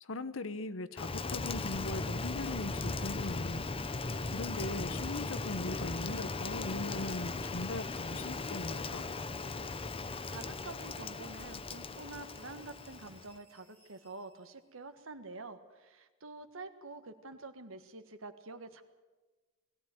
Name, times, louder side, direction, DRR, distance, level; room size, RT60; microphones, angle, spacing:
voice 1, 0.0-3.6 4.3-9.1, left 2 dB, 75° left, 13 dB, 1.0 m, -40 dB
Rain, 1.0-13.4, left 3 dB, 30° left, 0.8 m, -38 dB
sound 1, 2.9-14.8, equal, 10° left, 6.6 m, -65 dB
voice 2, 10.3-18.8, right 3 dB, 80° right, 8 dB, 1.6 m, -47 dB
21.0 x 15.0 x 9.2 m, 1.2 s
head